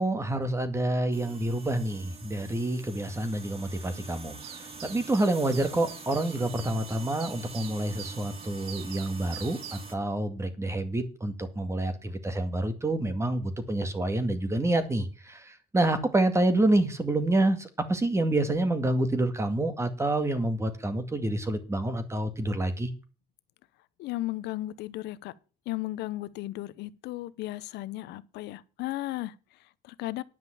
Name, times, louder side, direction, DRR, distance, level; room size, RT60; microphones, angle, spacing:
voice 1, 0.0-22.9, right 1 dB, 15° right, 2.1 m, -28 dB
sound 1, 1.1-9.9, right 4 dB, 35° right, 1.9 m, -45 dB
sound 2, 4.4-9.9, right 10 dB, 85° right, 1.4 m, -46 dB
voice 2, 24.0-25.3 25.7-30.2, left 16 dB, 80° left, 0.8 m, -35 dB
10.5 x 5.6 x 8.5 m
cardioid pair, 110°, 17 cm